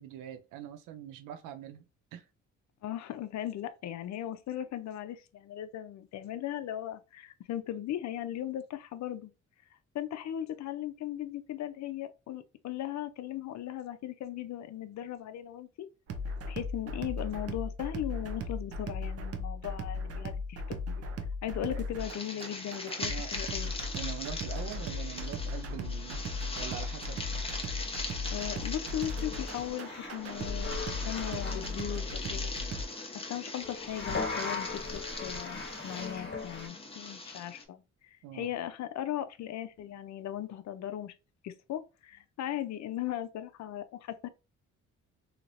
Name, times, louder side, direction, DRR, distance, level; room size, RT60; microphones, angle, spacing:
voice 1, 0.0-1.8 2.1-2.3 21.7-21.9 23.0-23.3 23.9-27.2 33.9-34.0 38.2-38.5, right 10 dB, 85° right, 0.5 m, -43 dB
voice 2, 2.8-9.3 9.9-15.9 16.5-21.0 21.4-23.7 28.3-32.5 33.3-41.1 41.4-44.3, left 11 dB, 65° left, 0.5 m, -38 dB
sound 1, 16.1-32.8, left 2 dB, 50° right, 0.7 m, -37 dB
sound 2, 22.0-37.6, left 3 dB, 20° left, 0.9 m, -41 dB
sound 3, 27.8-27.9 28.6-32.0 33.6-36.7, left 3 dB, 40° left, 1.3 m, -39 dB
3.1 x 2.8 x 2.5 m
cardioid pair, 90°, 30 cm